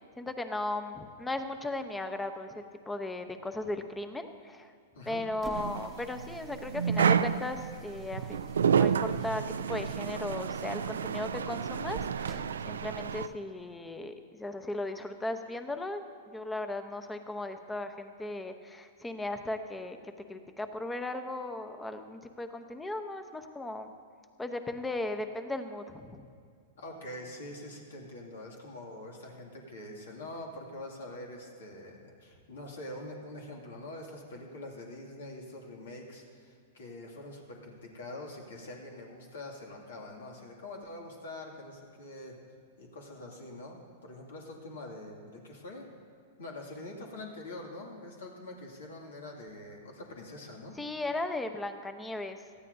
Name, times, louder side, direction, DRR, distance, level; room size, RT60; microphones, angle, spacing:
voice 1, 0.2-4.7 5.1-9.4 9.7-20.0 20.3-23.9 24.4-26.2 50.8-52.4, left 2 dB, 10° left, 8 dB, 0.9 m, -37 dB
sound 1, 5.3-13.4, right 5 dB, 15° right, 1.0 m, -50 dB
sound 2, 5.5-13.3, right 7 dB, 85° right, 0.3 m, -30 dB
voice 2, 26.8-42.4 42.8-45.9 46.4-50.8, left 1 dB, 80° left, 0 dB, 2.3 m, -44 dB
18.5 x 13.5 x 2.7 m, 2.2 s
hypercardioid pair, 115°, 0 cm